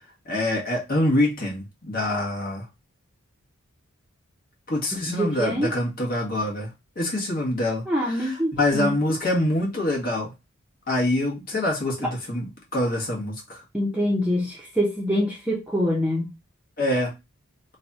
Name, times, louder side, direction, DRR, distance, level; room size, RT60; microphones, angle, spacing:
voice 1, 0.2-2.7 4.7-10.3 10.9-13.6 16.8-17.1, left 1 dB, 40° left, 1.3 m, -25 dB
voice 2, 4.9-5.7 7.9-8.9 13.7-16.3, equal, 5° right, 0.7 m, -25 dB
3.2 x 2.3 x 4.0 m
head